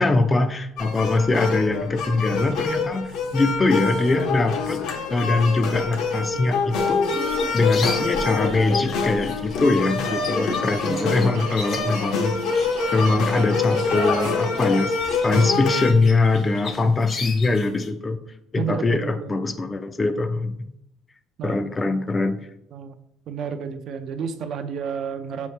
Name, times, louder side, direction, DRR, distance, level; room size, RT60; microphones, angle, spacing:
voice 1, 0.0-4.8 5.1-7.2 7.5-12.4 12.9-15.0 15.2-18.2 18.5-20.6 21.4-22.4, left 3 dB, 20° left, 9 dB, 0.3 m, -22 dB
sound 1, 0.8-15.9, left 4 dB, 75° left, 0.8 m, -26 dB
sound 2, 7.1-17.9, left 4 dB, 40° left, 0.7 m, -38 dB
Subway metro underground, 7.2-17.7, right 3 dB, 85° right, 0.8 m, -42 dB
voice 2, 10.8-11.5 18.6-19.4 21.4-21.7 22.7-23.0 23.3-25.5, right 7 dB, 55° right, 8 dB, 0.4 m, -31 dB
5.5 x 2.9 x 3.2 m, 0.78 s
cardioid pair, 130°, 0 cm